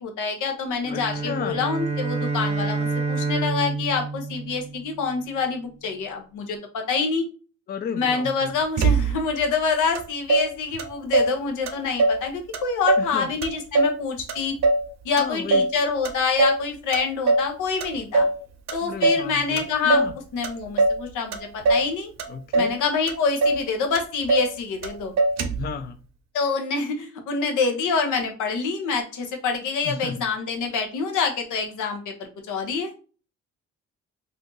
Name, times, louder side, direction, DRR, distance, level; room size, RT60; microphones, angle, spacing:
voice 1, 0.0-7.3 8.0-14.5 15.0-18.3 18.7-20.1 20.3-22.1 22.5-25.1 26.3-32.9, left 5 dB, 80° left, 0.9 m, -26 dB
sound 1, 0.8-5.3, right 4 dB, 20° right, 0.8 m, -28 dB
voice 2, 0.9-1.6 7.7-8.6 13.0-13.3 15.2-15.7 18.8-20.1 22.3-22.8 25.6-26.0 29.8-30.3, left 6 dB, 35° left, 0.4 m, -33 dB
Motor vehicle (road), 8.8-9.4 9.9-10.0 10.3-11.4 11.7-12.3 12.5-13.1 13.4-14.9 15.2-15.8 16.0-16.6 16.9-17.5 17.8-18.4 18.7-19.3 19.6-20.1 20.4-21.0 21.3-21.9 22.2-22.8 23.1-23.2 23.4-23.7 23.9-24.5 24.8-24.9 25.2-25.7, right 2 dB, 60° right, 0.6 m, -22 dB
2.7 x 2.5 x 3.7 m
cardioid pair, 90°, 30 cm